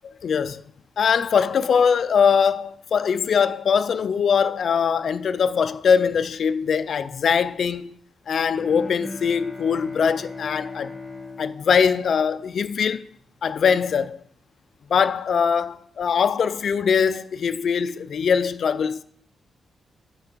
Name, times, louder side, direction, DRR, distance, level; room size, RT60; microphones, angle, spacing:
voice 1, 0.2-0.6 1.0-8.0 8.3-11.0 11.4-13.0 13.4-14.2 14.9-19.0, left 6 dB, 55° left, 0.4 m, -22 dB
Bowed string instrument, 8.5-12.8, left 3 dB, ahead, 2.0 m, -38 dB
8.6 x 5.0 x 4.5 m
wide cardioid pair, 160°, 0 cm